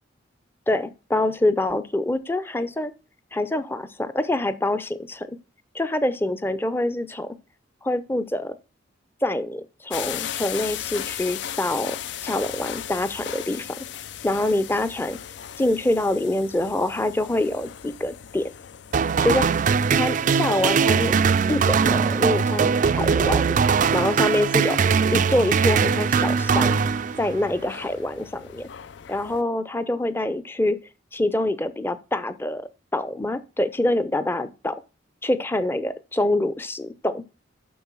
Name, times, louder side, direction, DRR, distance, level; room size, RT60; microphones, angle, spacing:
voice 1, 0.7-2.9 3.3-5.4 5.7-7.3 7.8-8.6 9.2-12.0 12.2-13.8 14.2-15.2 15.6-18.5 19.2-19.5 19.9-21.1 21.5-23.6 23.9-24.8 25.1-26.8 27.2-28.7 29.1-30.8 31.1-34.8 35.2-37.2, left 1 dB, 10° left, 0.6 m, -25 dB
sound 1, 9.9-29.4, left 10 dB, 60° left, 0.4 m, -38 dB
sound 2, 18.9-27.5, right 6 dB, 40° right, 0.3 m, -21 dB
7.0 x 6.3 x 6.0 m
head